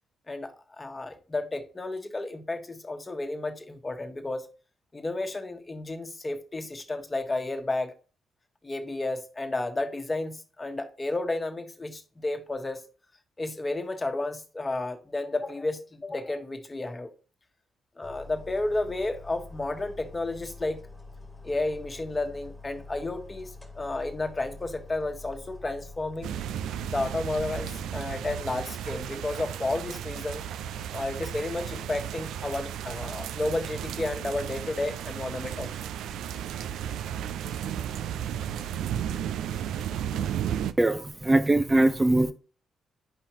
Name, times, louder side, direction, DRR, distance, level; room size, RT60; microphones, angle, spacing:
voice 1, 0.3-4.5 4.9-7.9 8.6-12.8 13.4-17.1 18.0-20.8 21.4-26.3 26.9-30.4 30.9-35.7, left 2 dB, 25° left, 1.5 m, -32 dB
sound 1, 18.0-28.0, left 3 dB, 5° left, 1.8 m, -46 dB
sound 2, 26.2-40.7, right 9 dB, 70° right, 0.4 m, -34 dB
voice 2, 40.8-42.3, right 2 dB, 20° right, 0.7 m, -22 dB
9.3 x 5.6 x 2.9 m
hypercardioid pair, 45°, 0 cm